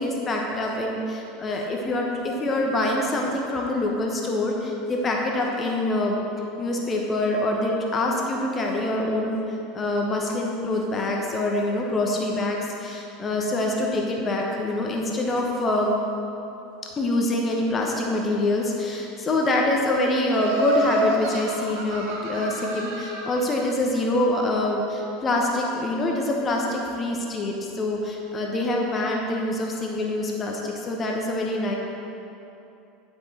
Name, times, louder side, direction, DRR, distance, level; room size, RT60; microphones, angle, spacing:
voice 1, 0.0-6.2 6.6-16.0 17.0-31.7, left 2 dB, 25° left, 0 dB, 1.1 m, -25 dB
Laughter, 20.3-23.5, right 2 dB, 55° right, 1.1 m, -28 dB
10.5 x 5.9 x 4.4 m, 2.9 s
figure-of-eight pair, 75°, 0 cm